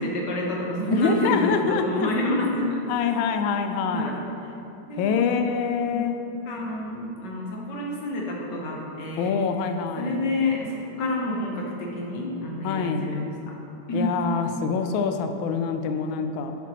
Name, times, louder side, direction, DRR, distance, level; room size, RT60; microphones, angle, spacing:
voice 1, 0.0-2.8 3.9-4.5 4.8-5.4 5.9-6.1 6.4-9.3 10.0-13.5 13.9-14.2, left 1 dB, 60° left, -1 dB, 1.5 m, -28 dB
voice 2, 0.9-2.1 2.9-4.2 5.0-6.2 9.2-10.2 12.6-13.1 13.9-16.6, left 6 dB, 75° left, 6 dB, 1.3 m, -25 dB
9.9 x 6.0 x 3.0 m, 2.9 s
omnidirectional pair, 2.3 m